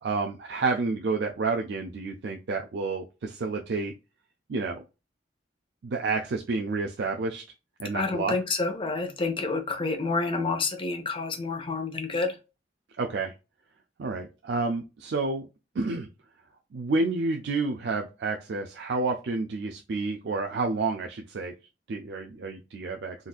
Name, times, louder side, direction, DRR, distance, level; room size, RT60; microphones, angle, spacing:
voice 1, 0.0-3.9 4.5-4.8 5.8-7.4 7.8-8.4 13.0-13.3 14.0-15.5 15.8-16.1 16.7-21.5 21.9-23.2, right 3 dB, 65° right, 0.4 m, -29 dB
voice 2, 7.9-12.3, left 3 dB, 30° left, 0.7 m, -28 dB
3.9 x 2.5 x 2.3 m
head